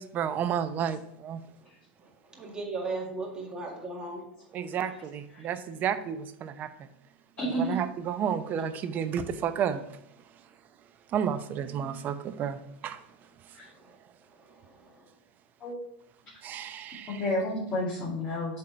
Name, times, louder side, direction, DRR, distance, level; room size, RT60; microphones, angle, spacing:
voice 1, 0.0-1.4 4.5-6.9 7.4-9.8 11.1-13.0 16.4-17.2, right 8 dB, 35° right, 11 dB, 0.6 m, -31 dB
voice 2, 2.0-4.5 13.6-13.9 14.4-15.1, right 3 dB, 15° right, 0 dB, 1.9 m, -38 dB
voice 3, 7.4-7.8 13.5-13.7 15.6-15.8 17.1-18.5, left 1 dB, 25° left, -10 dB, 2.4 m, -30 dB
7.6 x 3.8 x 4.4 m, 0.78 s
hypercardioid pair, 120°, 5 cm